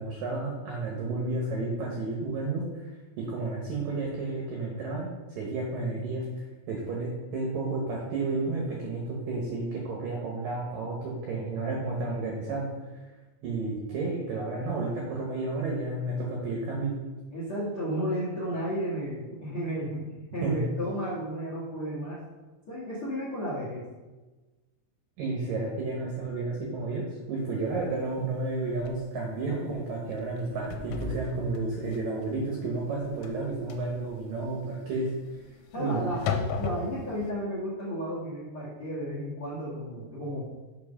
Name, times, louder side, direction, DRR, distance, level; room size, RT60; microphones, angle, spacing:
voice 1, 0.0-2.6 3.2-5.1 5.4-12.7 13.4-16.9 20.4-20.6 25.2-35.1 35.8-36.1, right 3 dB, 80° right, -2 dB, 2.0 m, -31 dB
voice 2, 17.3-22.2 22.7-23.8 35.7-36.2 36.6-40.4, equal, 70° left, -6 dB, 1.2 m, -33 dB
sound 1, 27.7-27.8 28.3-28.4 28.8-29.0 29.4-29.7 30.1-37.3, left 5 dB, 85° left, 3.2 m, -36 dB
7.4 x 5.1 x 5.6 m, 1.2 s
omnidirectional pair, 5.8 m